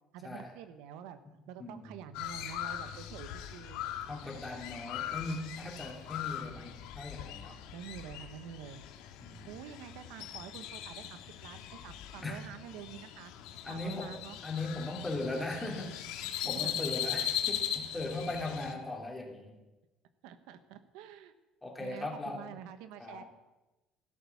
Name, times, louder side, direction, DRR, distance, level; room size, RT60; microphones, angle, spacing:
voice 1, 0.1-1.2 1.5-3.8 7.7-8.9 9.5-13.3 13.7-14.4 16.6-16.9 18.0-18.2 20.2-21.3 21.8-23.2, right 9 dB, 75° right, 11 dB, 1.2 m, -47 dB
voice 2, 1.6-2.0 4.1-7.6 9.2-9.5 12.2-12.4 13.6-14.2 14.4-16.0 16.5-19.6 21.6-22.6 23.0-23.2, left 2 dB, 10° left, 0 dB, 3.1 m, -39 dB
Crow, 2.1-18.7, left 10 dB, 80° left, 1.9 m, -40 dB
16.0 x 12.5 x 7.2 m, 1.0 s
cardioid pair, 165°, 0 cm